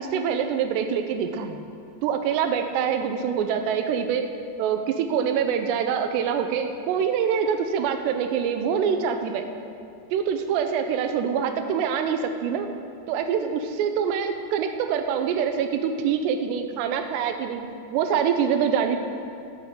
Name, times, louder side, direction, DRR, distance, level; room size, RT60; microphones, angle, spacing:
voice 1, 0.0-1.6 2.0-4.3 4.6-9.4 10.1-12.7 13.1-17.6 17.9-19.0, right 7 dB, 80° right, 7 dB, 2.7 m, -25 dB
13.5 x 11.0 x 3.7 m, 2.4 s
omnidirectional pair, 5.3 m